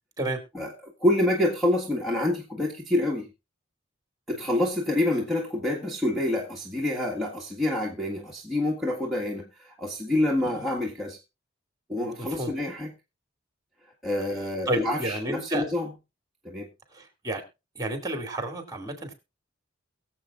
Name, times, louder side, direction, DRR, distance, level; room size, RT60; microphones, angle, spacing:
voice 1, 0.5-3.3 4.3-11.2 11.9-12.9 14.0-15.9 16.4-16.7, left 1 dB, ahead, -4 dB, 1.7 m, -27 dB
voice 2, 12.2-12.5 14.7-15.6 16.9-17.4 17.7-19.1, right 1 dB, 20° right, 5 dB, 2.4 m, -31 dB
22.0 x 7.6 x 2.5 m, 0.27 s
head